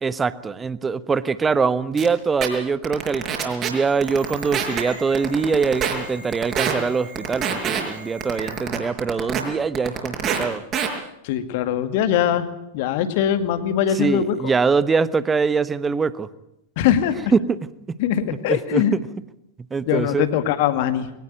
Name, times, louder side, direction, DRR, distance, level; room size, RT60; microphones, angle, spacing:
voice 1, 0.0-10.6 13.9-16.3 17.3-17.6 18.5-18.8 19.7-20.3, right 5 dB, 15° right, 17 dB, 1.1 m, -23 dB
sound 1, 2.0-2.1 2.4-2.5 2.8-3.7 4.0-4.8 5.1-5.9 6.3-6.7 7.2-7.8 8.2-9.4 9.7-10.4 10.7-10.9, right 8 dB, 30° right, 5.7 m, -24 dB
sound 2, 3.6-8.9, right 3 dB, 75° right, 5.6 m, -41 dB
voice 2, 11.2-12.5 12.7-14.4 16.8-17.2 18.0-19.0 19.9-21.1, left 10 dB, 50° left, 11 dB, 2.1 m, -21 dB
22.0 x 19.0 x 9.2 m, 0.85 s
figure-of-eight pair, 90°, 0 cm